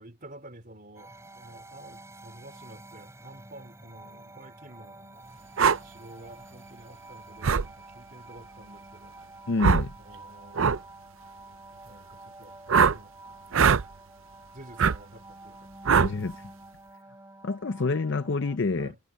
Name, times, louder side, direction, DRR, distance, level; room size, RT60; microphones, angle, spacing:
voice 1, 0.0-5.3 5.8-9.2 10.0-11.0 11.8-12.6 12.9-13.5 14.5-15.7 18.7-19.0, right 1 dB, 40° right, 4.3 m, -50 dB
sound 1, 1.0-18.6, right 2 dB, 10° right, 6.7 m, -49 dB
sound 2, 5.6-5.8 7.4-7.7 9.6-9.9 10.5-10.8 12.7-13.0 13.5-13.8 14.8-15.0 15.9-16.1, right 6 dB, 60° right, 0.5 m, -21 dB
voice 2, 9.5-9.9 16.0-16.4 17.4-18.9, left 3 dB, 55° left, 0.6 m, -27 dB
head